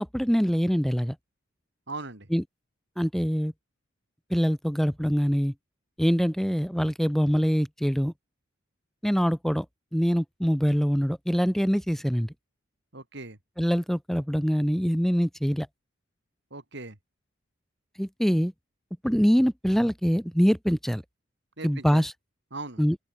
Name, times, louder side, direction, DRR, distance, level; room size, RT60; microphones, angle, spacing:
voice 1, 0.1-1.1 2.3-2.4 3.0-3.5 4.3-5.5 6.0-8.1 9.0-9.6 9.9-12.3 13.6-15.7 18.0-18.5 19.0-21.0 21.6-22.1 22.8-23.0, equal, ahead, 1.2 m, -24 dB
voice 2, 1.9-2.3 12.9-13.4 16.5-17.0 21.6-22.0 22.5-22.8, right 2 dB, 60° right, 3.3 m, -39 dB
open air
head